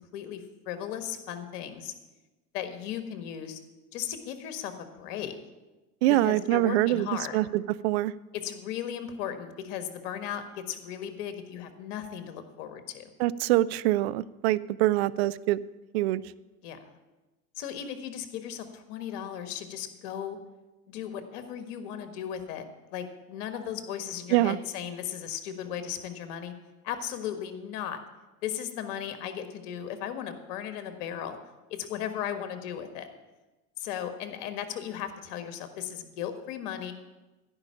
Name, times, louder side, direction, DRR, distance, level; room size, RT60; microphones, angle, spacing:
voice 1, 0.0-1.9 2.5-3.6 3.9-5.3 6.1-7.4 8.4-13.1 16.6-16.8 17.5-20.4 20.9-22.6 22.9-26.5 26.8-28.0 28.4-31.4 31.7-33.1 33.8-36.9, left 9 dB, 50° left, 9 dB, 1.6 m, -36 dB
voice 2, 6.0-7.1 7.3-8.1 13.2-15.6 15.9-16.2 24.3-24.6, right 16 dB, 45° right, 18 dB, 0.5 m, -24 dB
15.5 x 5.4 x 8.5 m, 1.1 s
figure-of-eight pair, 80°, 47 cm